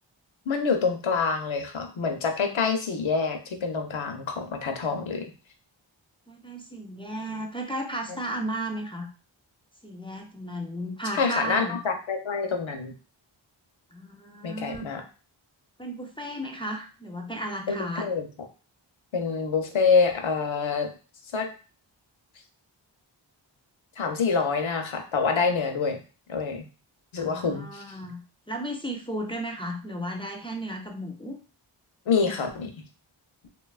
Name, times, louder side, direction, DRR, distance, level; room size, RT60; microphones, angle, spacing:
voice 1, 0.5-5.3 11.1-12.9 14.4-15.0 17.7-18.3 19.1-20.9 21.3-21.5 24.0-26.0 26.3-26.6 27.1-27.8 32.1-32.7, left 5 dB, 75° left, 5 dB, 0.6 m, -26 dB
voice 2, 6.3-9.1 9.8-11.8 13.9-14.9 15.8-18.1 27.2-28.2 28.5-31.4, right 1 dB, 15° left, 1 dB, 0.3 m, -34 dB
2.8 x 2.2 x 2.3 m, 0.35 s
wide cardioid pair, 55°, 47 cm